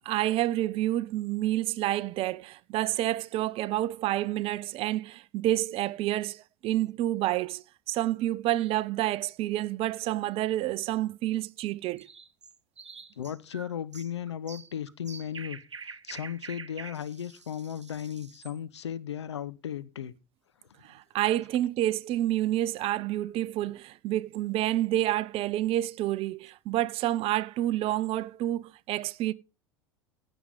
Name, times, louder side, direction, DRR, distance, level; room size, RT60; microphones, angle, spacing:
voice 1, 0.1-12.1 20.8-29.3, right 14 dB, 40° right, 0.6 m, -29 dB
sound 1, 12.0-18.6, right 5 dB, 85° right, 0.7 m, -46 dB
voice 2, 13.2-20.1, left 9 dB, 75° left, 0.8 m, -36 dB
15.5 x 6.1 x 5.4 m
figure-of-eight pair, 80°, 15 cm